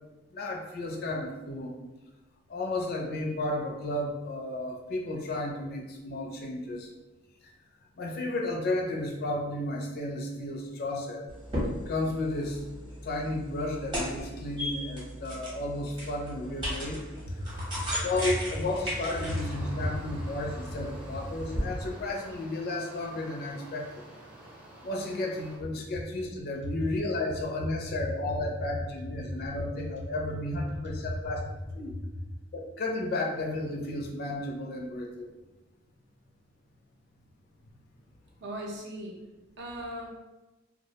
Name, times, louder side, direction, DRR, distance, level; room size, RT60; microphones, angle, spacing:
voice 1, 0.3-1.7 2.5-6.9 8.0-11.3 11.9-12.6 13.0-17.0 17.9-24.0 24.8-31.4 31.7-31.9 32.5-35.3, left 2 dB, 50° left, 1 dB, 0.4 m, -33 dB
sound 1, 11.3-21.6, equal, 25° right, 0.8 m, -37 dB
sound 2, 17.4-25.6, right 1 dB, 5° right, 0.5 m, -49 dB
voice 2, 17.4-18.0 19.8-19.9 29.3-29.4 30.8-30.9 31.9-32.0 38.4-39.2 39.6-40.1, equal, 60° right, 0 dB, 0.5 m, -37 dB
2.3 x 2.0 x 2.7 m, 1.1 s
head